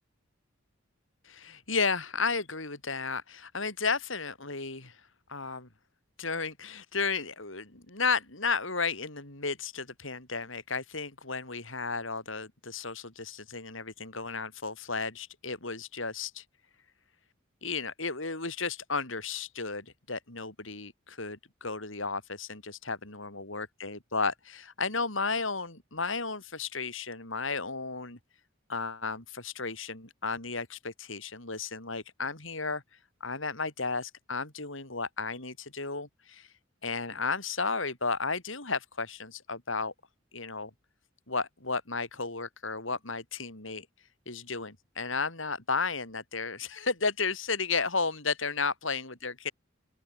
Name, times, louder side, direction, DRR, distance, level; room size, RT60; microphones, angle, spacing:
voice 1, 1.2-4.9 5.3-5.7 6.2-16.4 17.6-28.2 28.7-32.8 33.2-36.5 36.8-39.9 40.3-40.7 41.3-43.9 44.3-49.5, left 4 dB, 70° left, 5.9 m, -33 dB
open air
head